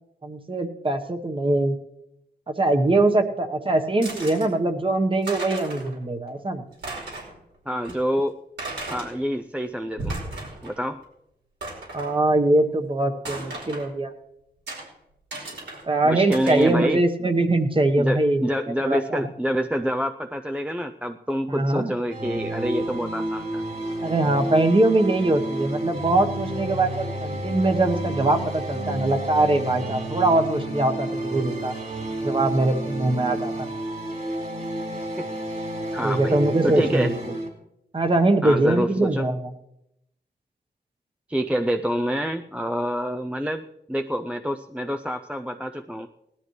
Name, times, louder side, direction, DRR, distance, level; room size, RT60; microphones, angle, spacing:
voice 1, 0.2-1.8 2.5-6.6 11.9-14.1 15.9-18.4 18.8-19.2 21.5-21.9 24.0-31.7 32.2-33.7 36.0-37.3 37.9-39.5, right 2 dB, 30° right, 6 dB, 1.2 m, -22 dB
sound 1, 4.0-4.5 5.0-5.1 5.2-5.9 6.3-6.4 6.7-7.4 7.8-7.9 8.6-9.1 9.8-10.8 11.0-11.1 11.6-12.1 13.2-13.9 14.7-14.8 15.3-15.8 16.3-16.7, right 2 dB, 85° right, 5.1 m, -35 dB
voice 2, 7.7-8.4 8.9-10.2 10.6-11.0 16.0-17.0 18.0-23.6 35.2-37.1 38.4-39.3 41.3-46.1, equal, 5° right, 6 dB, 0.5 m, -27 dB
sound 2, 22.1-37.5, right 1 dB, 50° right, 3.9 m, -30 dB
19.0 x 13.0 x 3.2 m, 0.83 s
wide cardioid pair, 125°, 18 cm